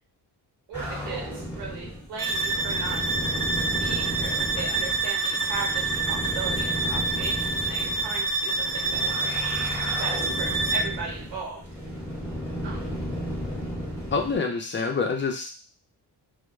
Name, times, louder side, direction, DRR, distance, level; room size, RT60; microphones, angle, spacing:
sound 1, 0.7-14.4, equal, 5° right, 1.2 m, -34 dB
voice 1, 0.7-3.0 3.6-9.5 9.8-11.6 12.6-13.1, right 4 dB, 75° right, 0 dB, 0.9 m, -37 dB
sound 2, 2.2-11.0, right 3 dB, 55° right, 0.6 m, -27 dB
voice 2, 14.1-15.5, left 4 dB, 30° left, 3 dB, 0.5 m, -26 dB
2.2 x 2.1 x 3.1 m, 0.36 s
cardioid pair, 105°, 41 cm